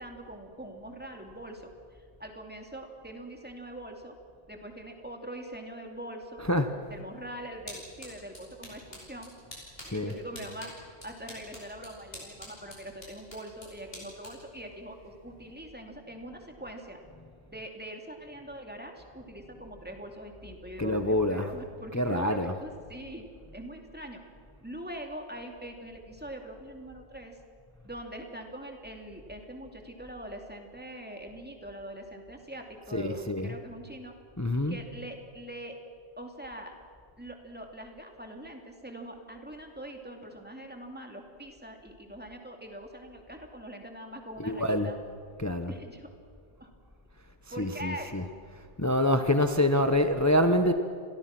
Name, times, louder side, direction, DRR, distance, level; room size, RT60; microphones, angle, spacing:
voice 1, 0.0-4.1 4.5-6.4 6.9-9.3 9.9-10.7 11.0-17.0 17.5-23.3 23.5-24.2 24.6-27.4 27.8-34.1 34.7-35.8 36.2-36.7 37.2-45.0 45.7-46.1 46.6-46.7 47.5-48.2, right 1 dB, 10° right, 3 dB, 2.8 m, -43 dB
sound 1, 7.0-15.7, left 1 dB, 60° left, 7.8 m, -49 dB
voice 2, 20.8-21.5 21.9-22.5 32.9-33.5 34.4-34.8 44.4-44.9 45.4-45.7 47.6-48.2 48.8-50.7, left 1 dB, 15° left, 8 dB, 1.0 m, -26 dB
30.0 x 23.0 x 6.1 m, 2.2 s
omnidirectional pair, 1.1 m